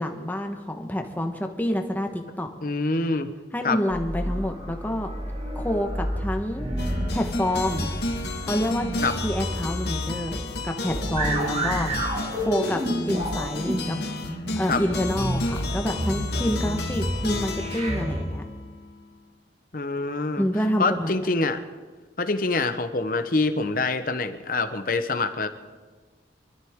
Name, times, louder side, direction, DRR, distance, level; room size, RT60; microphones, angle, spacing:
voice 1, 0.0-2.5 3.5-5.1 5.5-6.7 7.1-7.9 8.4-8.9 9.2-14.1 14.6-18.4 20.4-21.3, left 1 dB, 10° left, 4 dB, 1.2 m, -28 dB
voice 2, 2.6-3.3 3.6-3.8 9.0-9.2 11.2-11.7 14.7-14.8 19.7-20.4 20.8-21.6 22.2-25.5, left 3 dB, 50° left, 9 dB, 0.9 m, -25 dB
sound 1, 3.9-18.2, equal, 35° right, 1.9 m, -30 dB
sound 2, 6.8-19.0, left 2 dB, 70° left, 1.5 m, -32 dB
24.5 x 13.5 x 3.7 m, 1.4 s
head